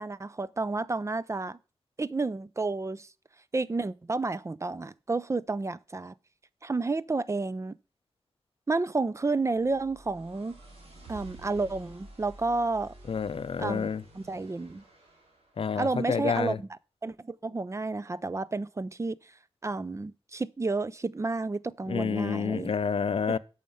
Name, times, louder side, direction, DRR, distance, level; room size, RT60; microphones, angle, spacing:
voice 1, 0.0-1.6 2.0-3.1 3.5-6.1 6.6-7.8 8.7-10.6 11.1-12.9 13.6-13.9 14.1-14.8 15.8-16.7 17.0-19.2 19.6-22.7 23.3-23.4, right 3 dB, 30° right, 0.5 m, -31 dB
sound 1, 9.4-15.5, right 2 dB, 90° right, 3.2 m, -51 dB
voice 2, 13.1-14.0 15.6-16.6 21.9-23.4, left 6 dB, 70° left, 0.5 m, -29 dB
8.9 x 6.5 x 5.5 m
wide cardioid pair, 80°, 10 cm